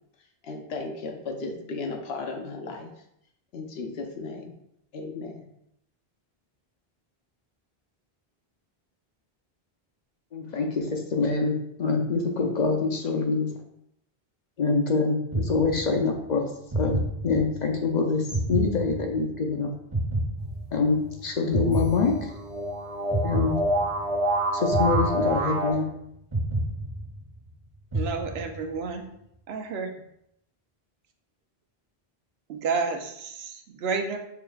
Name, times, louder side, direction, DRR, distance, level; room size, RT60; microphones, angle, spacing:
voice 1, 0.4-2.9 3.5-4.5 4.9-5.5, left 3 dB, 80° left, 3 dB, 0.9 m, -35 dB
voice 2, 10.3-13.5 14.6-16.5 16.7-17.0 17.2-18.2 18.5-19.7 20.7-22.3 23.2-23.6 24.5-25.9, left 4 dB, 55° left, 2 dB, 0.6 m, -25 dB
sound 1, 15.3-16.2 16.7-17.8 18.3-19.5 19.9-21.1 21.5-22.7 23.1-24.2 24.7-25.9 26.3-27.5 27.9-28.8, right 1 dB, 25° right, 1.3 m, -30 dB
sound 2, 20.4-25.7, right 1 dB, 45° right, 0.7 m, -29 dB
voice 3, 27.9-29.1 29.5-30.0 32.5-34.2, right 4 dB, 85° right, 5 dB, 0.9 m, -30 dB
5.7 x 3.3 x 2.3 m, 0.77 s
omnidirectional pair, 1.0 m